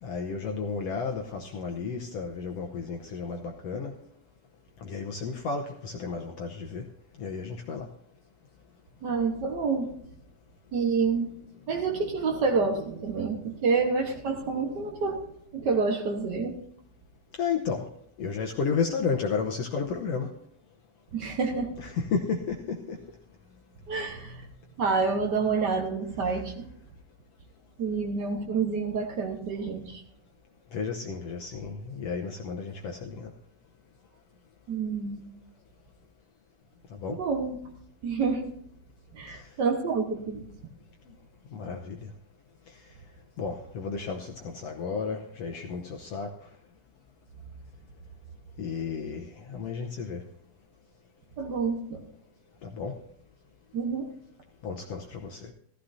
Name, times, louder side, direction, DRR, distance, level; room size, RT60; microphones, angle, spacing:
voice 1, 0.0-3.9 4.8-6.8 7.2-7.9 17.4-17.9 18.2-20.3 21.8-23.0 30.7-33.3 37.0-37.2 39.3-39.4 41.5-42.1 43.4-46.3 48.6-50.2 52.6-53.0 54.6-55.5, left 5 dB, 75° left, 3 dB, 1.5 m, -32 dB
voice 2, 9.0-9.9 10.7-11.3 11.7-15.2 15.5-16.5 21.1-21.7 23.9-24.4 24.8-26.7 27.8-30.0 34.7-35.2 37.1-37.6 38.0-38.4 39.1-40.4 51.4-52.0 53.7-54.1, right 4 dB, 85° right, 3 dB, 0.9 m, -28 dB
15.0 x 14.5 x 2.7 m, 0.67 s
omnidirectional pair, 3.8 m